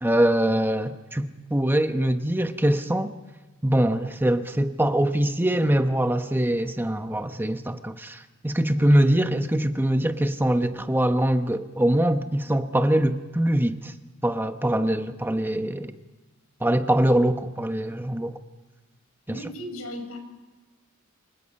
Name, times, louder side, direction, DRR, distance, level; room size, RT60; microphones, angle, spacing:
voice 1, 0.0-3.1 3.6-13.9 14.2-15.9 16.6-18.4 19.3-19.4, right 1 dB, 10° right, 1.0 m, -23 dB
voice 2, 8.8-9.1 19.3-20.2, equal, 90° left, 6.2 m, -37 dB
28.0 x 25.0 x 5.5 m
head